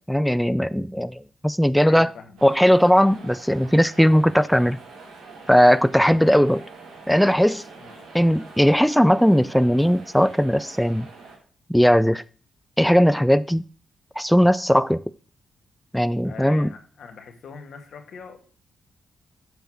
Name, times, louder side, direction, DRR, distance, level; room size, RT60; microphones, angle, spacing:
voice 1, 0.0-2.1 2.4-4.8 5.5-6.6 7.1-7.6 8.1-11.1 11.7-12.2 12.8-13.6 14.2-15.0 15.9-16.7, equal, ahead, 0.3 m, -18 dB
voice 2, 1.8-2.4 6.0-6.3 7.8-8.1 16.2-18.4, left 5 dB, 70° left, 1.8 m, -41 dB
sound 1, 2.4-11.4, right 3 dB, 85° right, 2.8 m, -44 dB
7.9 x 4.6 x 6.0 m
supercardioid pair, 60°, 0 cm